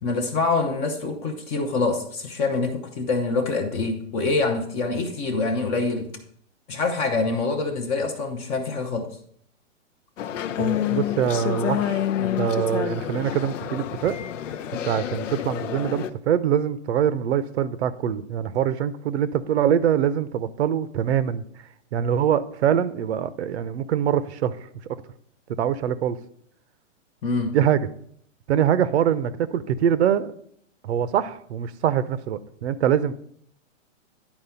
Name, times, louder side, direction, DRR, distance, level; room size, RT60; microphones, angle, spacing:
voice 1, 0.0-6.1 6.7-9.2 27.2-27.6, left 3 dB, 15° left, 5 dB, 0.6 m, -25 dB
sound 1, 10.2-16.1, left 10 dB, 80° left, 0.7 m, -28 dB
voice 2, 10.6-14.1 14.8-21.4 21.9-24.5 25.6-26.2 27.5-27.9 28.5-30.3 30.8-33.1, right 9 dB, 60° right, 14 dB, 0.7 m, -24 dB
11.0 x 4.5 x 5.6 m, 0.65 s
hypercardioid pair, 150°, 38 cm